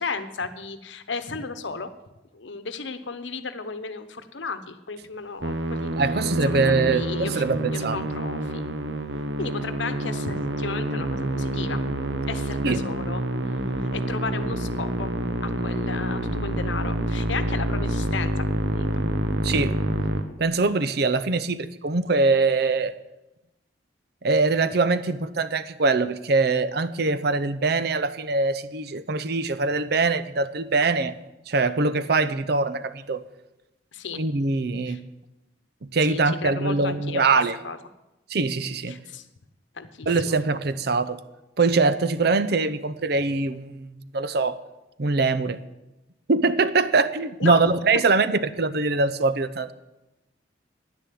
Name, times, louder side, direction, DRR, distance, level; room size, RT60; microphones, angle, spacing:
voice 1, 0.0-1.9 2.3-5.9 6.4-8.7 9.4-11.8 12.3-13.2 13.5-13.6 13.9-15.1 15.4-18.9 33.9-34.2 34.9-35.0 36.1-37.3 37.6-37.8 38.9-39.3 39.8-40.4 47.4-47.6, left 4 dB, 80° left, 10 dB, 1.0 m, -34 dB
Musical instrument, 5.4-20.2, right 1 dB, 75° right, 1.0 m, -27 dB
voice 2, 5.9-8.0 12.6-12.8 19.4-19.8 20.4-22.9 24.2-31.2 31.5-33.2 34.2-35.0 35.8-37.6 38.3-39.0 40.1-41.2 41.6-44.6 45.0-45.6 46.3-49.7, right 3 dB, 60° right, 13 dB, 0.6 m, -23 dB
10.0 x 9.9 x 7.6 m, 0.97 s
head